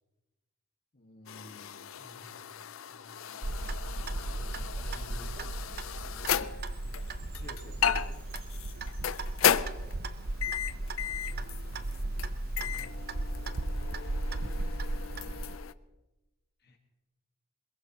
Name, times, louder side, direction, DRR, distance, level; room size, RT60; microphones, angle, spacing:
voice 1, 0.9-1.9 7.4-7.9 16.6-16.8, left 1 dB, 50° left, 2 dB, 1.6 m, -51 dB
sound 1, 1.3-15.7, left 9 dB, 80° left, 0.5 m, -35 dB
voice 2, 2.0-2.4 2.9-3.2 4.0-5.5 7.7-8.2 11.3-12.1 12.4-13.7, left 1 dB, 30° right, -1 dB, 7.2 m, -54 dB
Clock, 3.4-15.6, right 2 dB, 50° right, 0.7 m, -36 dB
Wind chime, 4.3-10.0, right 4 dB, 75° right, 5.5 m, -62 dB
22.5 x 21.5 x 2.9 m, 1.1 s
head